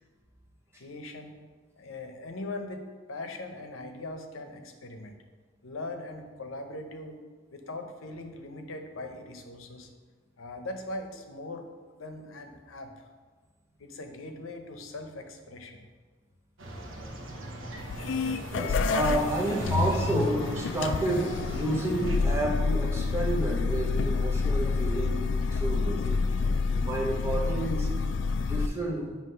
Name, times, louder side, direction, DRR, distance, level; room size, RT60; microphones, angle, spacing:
voice 1, 0.8-1.4 1.8-5.2 5.6-7.2 7.5-9.9 10.4-11.7 11.9-12.9 13.8-15.9, left 2 dB, 85° left, 5 dB, 0.7 m, -40 dB
sound 1, 16.6-22.2, right 1 dB, 80° right, 0.9 m, -39 dB
sound 2, 17.8-28.7, left 4 dB, 65° left, 0.3 m, -28 dB
voice 2, 18.5-26.3 26.8-28.0 28.5-29.1, right 1 dB, 15° right, -2 dB, 0.9 m, -30 dB
sound 3, 19.7-23.9, equal, 35° right, 1.2 m, -44 dB
7.5 x 2.9 x 5.5 m, 1.4 s
head